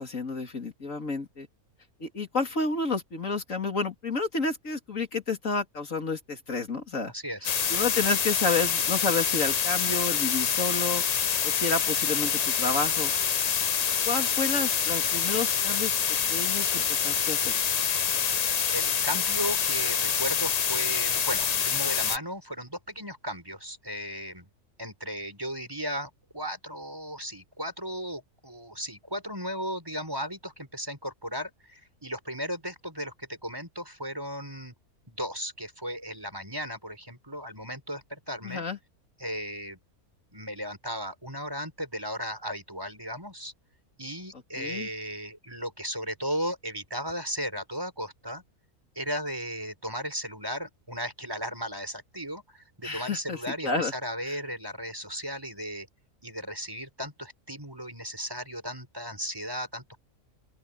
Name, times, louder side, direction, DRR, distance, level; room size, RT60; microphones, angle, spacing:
voice 1, 0.0-1.5 2.0-7.1 7.7-13.4 14.0-15.9 16.3-17.5 38.4-38.8 44.6-44.9 52.8-53.9, left 3 dB, 60° left, 3.0 m, -30 dB
voice 2, 7.1-7.6 18.7-24.5 24.8-34.7 35.1-38.6 39.2-39.8 40.3-43.5 44.0-48.4 48.9-55.9 56.2-60.0, equal, 15° right, 4.9 m, -36 dB
sound 1, 7.4-22.2, left 7 dB, 80° left, 0.3 m, -26 dB
open air
omnidirectional pair, 1.6 m